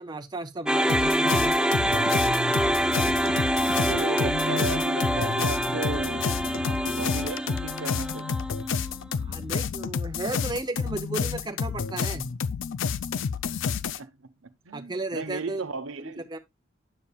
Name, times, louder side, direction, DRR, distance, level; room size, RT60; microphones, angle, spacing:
voice 1, 0.0-1.5 9.1-12.3 14.7-15.7 16.3-16.4, right 2 dB, 20° right, 0.8 m, -34 dB
sound 1, 0.6-8.9, equal, 5° right, 0.4 m, -26 dB
sound 2, 0.9-14.0, left 6 dB, 65° left, 0.4 m, -30 dB
voice 2, 3.8-8.3 14.0-16.2, right 3 dB, 70° right, 0.9 m, -36 dB
10.0 x 7.0 x 2.4 m
head